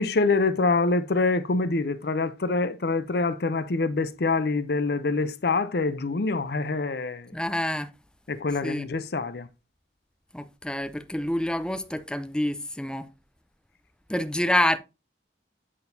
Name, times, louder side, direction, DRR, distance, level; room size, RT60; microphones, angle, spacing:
voice 1, 0.0-7.4 8.3-9.5, left 3 dB, 60° left, 0.6 m, -25 dB
voice 2, 7.3-7.9 8.6-8.9 10.3-13.1 14.1-14.8, left 1 dB, 5° left, 0.5 m, -27 dB
8.7 x 6.2 x 2.7 m
head